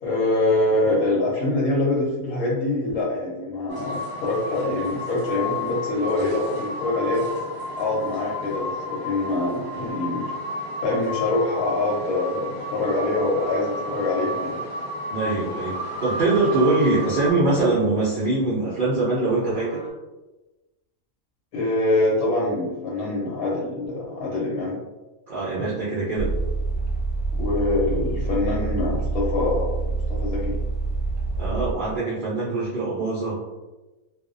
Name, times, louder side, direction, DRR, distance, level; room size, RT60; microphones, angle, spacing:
voice 1, 0.0-7.2 7.8-10.3 10.8-14.6 21.5-24.8 27.4-30.5, left 2 dB, 85° left, -5 dB, 1.1 m, -24 dB
sound 1, 3.7-17.3, equal, 35° left, 1.1 m, -32 dB
sound 2, 13.3-19.9, left 1 dB, 65° left, 0.5 m, -44 dB
voice 2, 15.1-15.7 16.0-19.8 25.3-26.3 31.4-33.4, right 2 dB, 65° right, -7 dB, 0.5 m, -23 dB
sound 3, 26.2-31.7, right 3 dB, 80° right, 1.1 m, -26 dB
2.4 x 2.0 x 2.5 m, 1.1 s
omnidirectional pair, 1.5 m